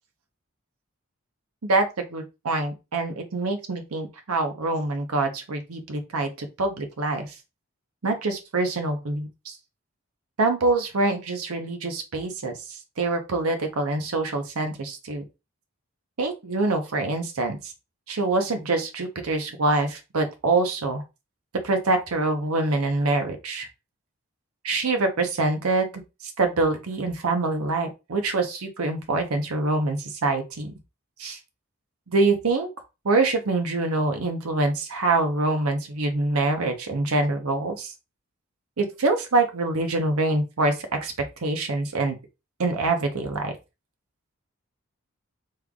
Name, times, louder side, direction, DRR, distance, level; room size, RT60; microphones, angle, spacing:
voice 1, 1.6-7.3 8.0-9.5 10.4-12.5 13.0-15.2 16.2-17.7 18.1-21.0 21.6-23.7 24.6-25.9 26.2-30.7 31.2-31.4 32.1-32.7 33.0-37.9 38.8-40.8 41.0-41.1 41.4-42.2 42.6-43.6, right 2 dB, 90° right, 5 dB, 0.8 m, -25 dB
3.3 x 2.3 x 3.6 m, 0.26 s
head